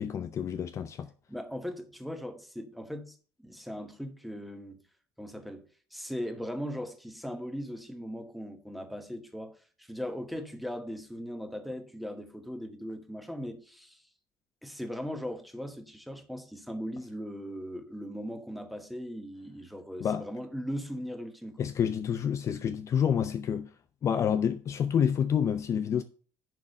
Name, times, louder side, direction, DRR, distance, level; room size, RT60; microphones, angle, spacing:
voice 1, 0.0-1.1 20.0-20.3 21.6-23.7 24.0-26.0, left 8 dB, 35° left, 0.5 m, -28 dB
voice 2, 1.3-3.2 3.4-4.8 5.2-14.0 14.6-21.6, equal, ahead, 1.1 m, -39 dB
10.5 x 3.6 x 6.3 m
cardioid pair, 135°, 8 cm